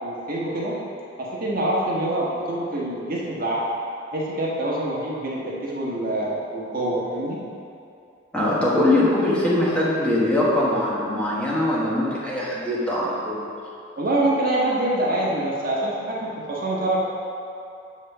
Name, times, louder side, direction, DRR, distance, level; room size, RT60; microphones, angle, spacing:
voice 1, 0.0-0.8 1.2-3.6 4.1-7.4 14.0-17.0, right 1 dB, 45° right, -5 dB, 1.4 m, -25 dB
voice 2, 8.3-13.5, left 1 dB, 5° left, -7 dB, 1.3 m, -22 dB
8.3 x 4.2 x 6.7 m, 2.6 s
head